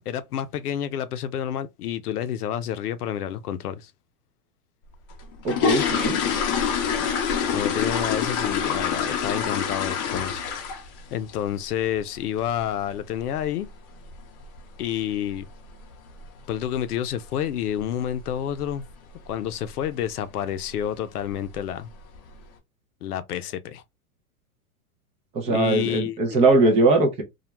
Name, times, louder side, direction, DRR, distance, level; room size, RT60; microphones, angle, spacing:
voice 1, 0.0-3.9 7.5-10.6 11.1-13.7 14.8-15.5 16.5-18.9 19.3-21.9 23.0-23.8 25.5-26.4, left 10 dB, 90° left, 0.6 m, -29 dB
sound 1, 5.1-11.0 11.3-11.6 11.9-12.0 12.4-12.5 12.9-13.1 13.4-13.5 14.1-14.2 14.4-14.6 15.1-15.4 15.7-15.8 16.2-16.4 16.7-16.8 17.2-17.3 17.9-18.3 18.6-18.9 19.3-19.4 19.8-19.9 20.7-20.8 21.2-21.7 22.1-22.2, left 7 dB, 35° left, 0.6 m, -26 dB
voice 2, 5.4-6.2 25.3-27.2, right 2 dB, 15° right, 0.4 m, -20 dB
2.3 x 2.1 x 2.9 m
hypercardioid pair, 125°, 44 cm